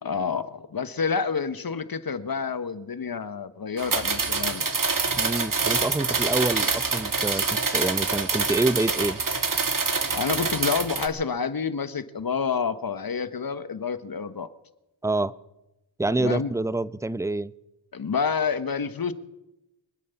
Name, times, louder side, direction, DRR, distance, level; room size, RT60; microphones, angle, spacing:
voice 1, 0.0-4.7 10.1-14.5 16.2-16.5 17.9-19.1, left 6 dB, 45° left, 13 dB, 1.3 m, -28 dB
sound 1, 3.8-11.1, right 4 dB, 40° right, 1.8 m, -26 dB
voice 2, 5.2-9.2 15.0-15.3 16.0-17.5, right 2 dB, 5° right, 19 dB, 0.5 m, -27 dB
24.5 x 8.5 x 7.1 m, 0.97 s
cardioid pair, 45°, 49 cm